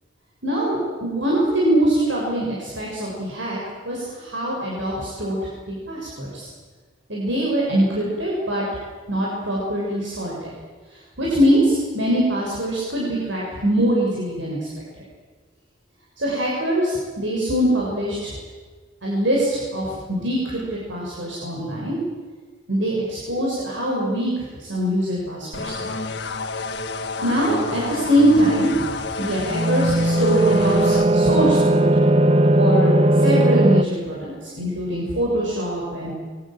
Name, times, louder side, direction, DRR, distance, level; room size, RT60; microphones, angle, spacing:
voice 1, 0.4-3.6 3.9-5.4 5.7-6.5 7.1-8.6 9.1-10.5 11.2-14.6 16.2-18.3 19.0-22.0 22.7-25.9 27.2-31.9 32.6-36.1, right 1 dB, 75° right, -4 dB, 7.1 m, -23 dB
sound 1, 25.5-31.1, left 3 dB, 55° left, 1.9 m, -30 dB
sound 2, 29.5-33.8, right 1 dB, 30° right, 0.8 m, -17 dB
28.0 x 23.5 x 7.8 m, 1.5 s
head